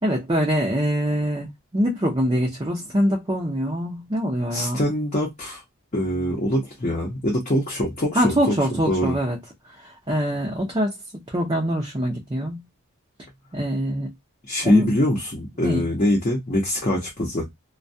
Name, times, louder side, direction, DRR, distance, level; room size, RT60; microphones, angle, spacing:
voice 1, 0.0-4.8 8.1-9.4 9.8-10.9 11.3-12.6 13.5-14.1 14.6-14.9 15.6-15.8, equal, 20° right, 0.5 m, -24 dB
voice 2, 4.5-5.6 5.9-9.1 14.5-17.5, left 1 dB, 35° left, 0.7 m, -24 dB
2.2 x 2.2 x 2.6 m
head